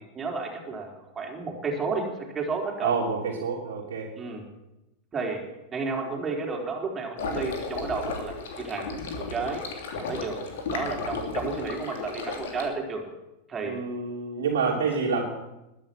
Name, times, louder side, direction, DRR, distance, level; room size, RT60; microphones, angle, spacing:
voice 1, 0.1-2.9 4.2-4.4 5.1-5.4 5.7-9.6 10.0-10.4 10.7-13.0 13.5-13.8, right 4 dB, 20° right, 1 dB, 4.0 m, -32 dB
voice 2, 2.8-4.1 13.6-15.2, right 5 dB, 60° right, -5 dB, 3.0 m, -28 dB
sound 1, 7.2-12.7, left 4 dB, 60° left, 3.0 m, -34 dB
20.5 x 9.8 x 6.1 m, 0.95 s
figure-of-eight pair, 90°, 0 cm